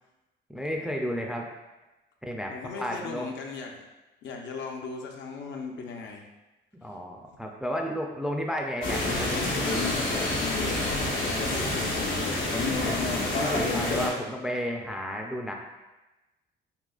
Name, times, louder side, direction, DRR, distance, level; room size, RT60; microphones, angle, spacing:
voice 1, 0.5-1.5 2.2-3.3 6.8-9.3 12.8-15.5, equal, 5° right, 1 dB, 0.4 m, -33 dB
voice 2, 2.5-3.8 4.2-6.2 10.4-12.4, left 4 dB, 65° left, 1 dB, 0.6 m, -38 dB
sound 1, 8.8-14.1, left 2 dB, 90° left, 1.0 m, -27 dB
3.8 x 2.8 x 2.3 m, 1.1 s
cardioid pair, 90°, 20 cm